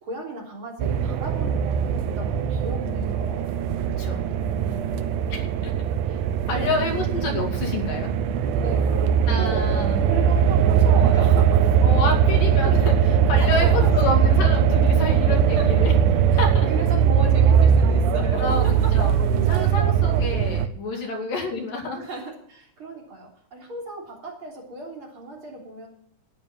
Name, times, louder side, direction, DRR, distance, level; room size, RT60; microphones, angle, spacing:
voice 1, 0.0-3.5 4.4-5.2 6.5-6.8 8.6-9.8 10.1-11.8 13.4-13.9 15.5-15.7 16.3-19.3 20.9-21.1 21.9-25.9, right 2 dB, 40° right, -1 dB, 4.1 m, -35 dB
sound 1, 0.8-20.7, right 7 dB, 80° right, 2.1 m, -20 dB
voice 2, 5.3-5.7 6.1-6.2 6.5-8.1 9.3-10.0 11.8-15.9 16.4-16.7 18.4-22.0, left 3 dB, 90° left, 2 dB, 4.0 m, -29 dB
12.0 x 9.3 x 7.3 m, 0.63 s
omnidirectional pair, 3.8 m